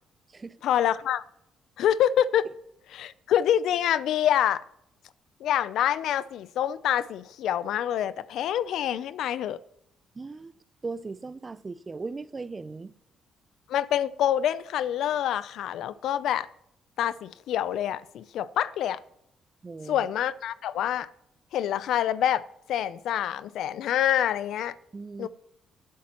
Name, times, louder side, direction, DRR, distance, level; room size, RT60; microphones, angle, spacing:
voice 1, 0.6-1.2 1.8-2.4 2.9-4.6 5.4-9.6 13.7-16.5 17.0-19.0 19.9-21.1 21.5-22.4 22.7-24.7 25.2-25.3, left 10 dB, 80° left, 0.5 m, -26 dB
voice 2, 10.2-10.5 10.8-12.9 19.6-20.1 24.9-25.3, right 3 dB, 30° right, 0.5 m, -38 dB
19.0 x 8.4 x 3.0 m
cardioid pair, 90°, 0 cm